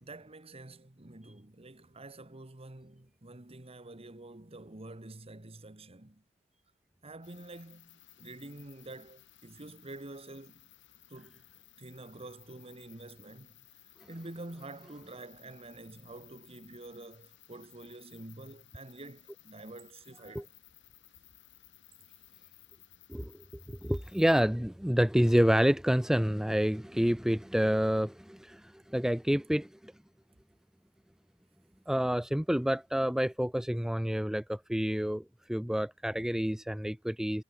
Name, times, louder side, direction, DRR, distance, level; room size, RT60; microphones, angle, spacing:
voice 1, 0.0-6.2 7.0-10.7 11.1-11.4 11.8-13.6 14.1-20.5, right 2 dB, 30° right, 1.5 m, -48 dB
sound 1, 7.2-24.4, left 13 dB, 65° left, 5.4 m, -59 dB
voice 2, 23.8-28.6 28.9-29.9 31.9-35.2 35.5-37.4, equal, 5° right, 0.4 m, -28 dB
head